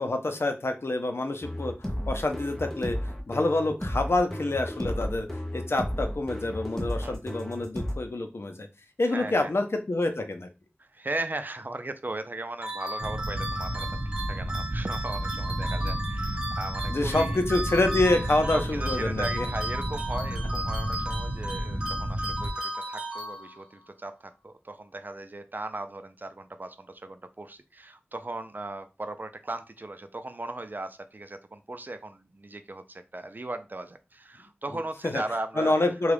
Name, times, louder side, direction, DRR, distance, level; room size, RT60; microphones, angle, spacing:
voice 1, 0.0-5.3 5.5-8.7 9.0-10.5 16.9-19.5 35.1-35.2 35.6-36.1, left 2 dB, 75° left, 6 dB, 0.6 m, -27 dB
sound 1, 1.4-8.0, equal, 10° left, 0.8 m, -33 dB
voice 2, 9.1-9.5 10.8-13.9 14.3-17.4 18.5-35.7, right 2 dB, 45° right, 9 dB, 0.4 m, -37 dB
sound 2, 12.6-23.8, right 1 dB, 25° right, 1.0 m, -35 dB
sound 3, 13.0-22.5, right 1 dB, 70° right, 0.9 m, -32 dB
3.5 x 2.3 x 3.4 m, 0.28 s
wide cardioid pair, 45°, 4 cm